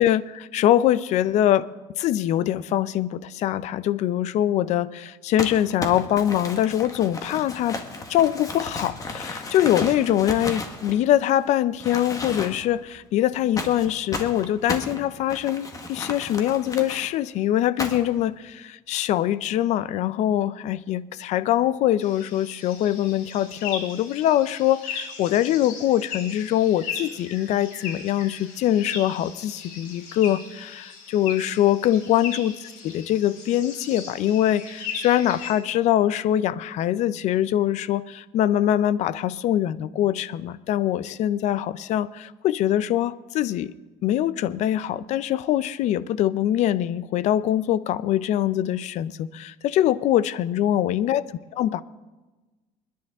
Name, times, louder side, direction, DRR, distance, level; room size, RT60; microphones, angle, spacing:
voice 1, 0.0-1.7 2.0-7.8 8.1-43.7 44.0-51.2 51.5-51.8, left 12 dB, 60° left, 17 dB, 0.6 m, -23 dB
Crumpling crinkling, 5.4-11.4 11.8-12.8 13.6-17.1 17.8-18.2, left 3 dB, 25° left, 1.5 m, -34 dB
sound 1, 22.0-35.5, left 6 dB, 80° left, 3.7 m, -38 dB
28.0 x 10.5 x 3.6 m, 1.2 s
cardioid pair, 125°, 13 cm